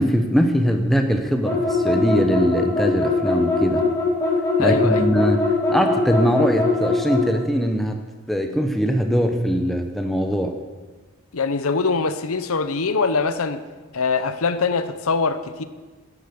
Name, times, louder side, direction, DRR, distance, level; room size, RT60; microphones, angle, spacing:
voice 1, 0.0-3.9 4.6-8.0 8.3-10.6, equal, ahead, 4 dB, 0.8 m, -21 dB
sound 1, 1.4-7.3, left 3 dB, 15° left, 2.9 m, -21 dB
voice 2, 4.6-5.1 11.3-13.6 13.9-15.6, left 4 dB, 75° left, 11 dB, 0.8 m, -23 dB
12.5 x 8.0 x 6.8 m, 1.3 s
head